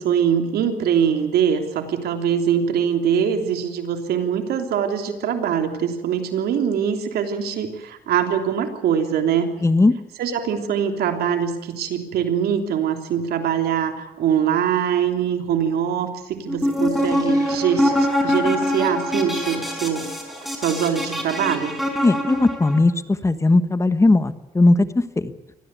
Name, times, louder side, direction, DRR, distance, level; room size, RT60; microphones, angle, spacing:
voice 1, 0.0-9.5 10.2-20.1 20.6-21.8, right 8 dB, 85° right, 6 dB, 3.2 m, -23 dB
voice 2, 9.6-9.9 22.0-25.3, left 2 dB, 20° left, 12 dB, 1.3 m, -18 dB
sound 1, 16.5-22.8, left 1 dB, ahead, 5.5 m, -24 dB
sound 2, 16.6-21.9, right 2 dB, 20° right, 7.9 m, -45 dB
24.5 x 18.0 x 8.3 m, 0.99 s
cardioid pair, 110°, 16 cm